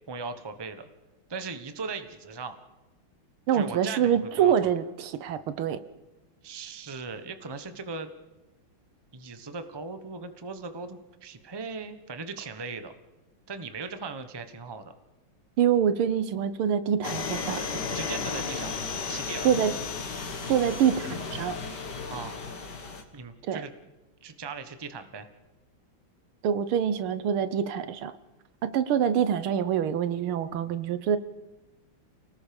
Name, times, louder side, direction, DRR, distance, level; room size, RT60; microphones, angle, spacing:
voice 1, 0.1-0.8 1.3-2.6 3.5-4.5 6.4-8.1 9.1-12.9 13.5-14.9 17.9-19.7 22.1-22.3 23.1-23.7 24.2-25.3, right 4 dB, 20° right, 9 dB, 0.8 m, -38 dB
voice 2, 3.5-5.8 15.6-17.8 19.4-19.7 20.5-21.6 23.4-23.6 26.4-28.1 28.6-31.2, right 8 dB, 80° right, 13 dB, 1.8 m, -25 dB
sound 1, 17.0-23.0, left 5 dB, 55° left, 2.5 m, -34 dB
29.0 x 19.0 x 5.3 m, 1.1 s
omnidirectional pair, 2.3 m